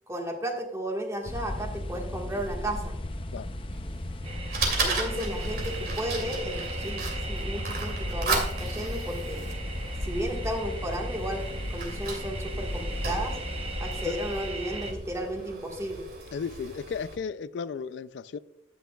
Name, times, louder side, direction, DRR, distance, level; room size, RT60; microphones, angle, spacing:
voice 1, 0.1-2.9 4.8-9.5 10.0-13.4 13.8-16.1, right 1 dB, 15° right, 1.5 m, -34 dB
sound 1, 1.3-15.5, left 1 dB, 30° left, 0.6 m, -35 dB
Fire, 3.7-17.1, right 3 dB, 55° right, 2.5 m, -36 dB
sound 2, 4.2-14.9, right 3 dB, 35° right, 0.9 m, -40 dB
voice 2, 16.3-18.4, left 5 dB, 85° left, 0.3 m, -35 dB
11.5 x 9.1 x 2.3 m
head